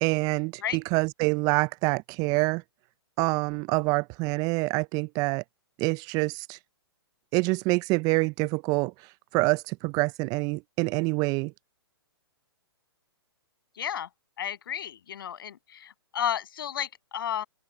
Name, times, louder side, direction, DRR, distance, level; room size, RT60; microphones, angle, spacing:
voice 1, 0.0-2.6 3.2-5.4 5.8-6.6 7.3-8.9 9.3-11.5, right 27 dB, 30° right, 0.6 m, -26 dB
voice 2, 13.8-14.1 14.4-17.5, left 9 dB, 60° left, 7.3 m, -32 dB
open air
figure-of-eight pair, 120°, 13 cm